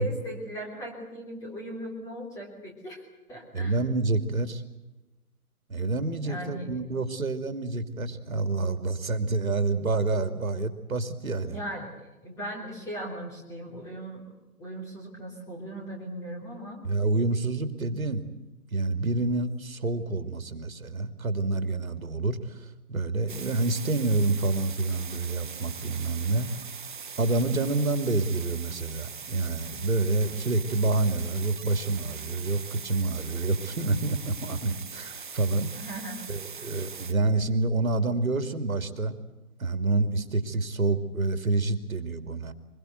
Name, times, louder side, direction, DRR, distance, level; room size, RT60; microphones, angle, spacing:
voice 1, 0.0-3.0 3.3-3.8 6.2-6.7 11.5-11.9 12.2-14.2 14.6-16.9 35.7-36.2, right 1 dB, 5° left, 0 dB, 3.4 m, -38 dB
voice 2, 3.5-4.6 5.7-11.6 16.8-18.3 18.7-26.5 27.2-35.7 36.3-39.2 39.6-42.5, right 3 dB, 65° right, 10 dB, 2.9 m, -28 dB
sound 1, 23.3-37.1, right 6 dB, 35° right, 0.8 m, -41 dB
24.0 x 22.0 x 8.0 m, 1.0 s
figure-of-eight pair, 155°, 44 cm